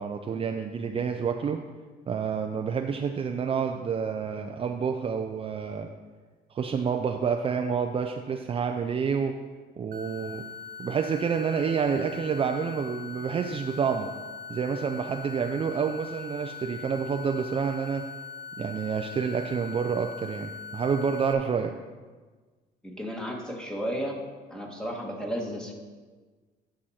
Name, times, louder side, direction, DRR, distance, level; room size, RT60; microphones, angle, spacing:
voice 1, 0.0-1.6 2.1-5.9 6.5-9.3 9.8-10.4 10.8-14.1 14.5-18.0 18.6-21.7, right 6 dB, 35° right, 4 dB, 0.5 m, -28 dB
sound 1, 9.9-21.3, left 6 dB, 55° right, 0.9 m, -41 dB
voice 2, 22.8-24.2 24.5-25.7, equal, 5° left, 0 dB, 1.7 m, -33 dB
10.0 x 6.2 x 4.3 m, 1.4 s
cardioid pair, 110°, 17 cm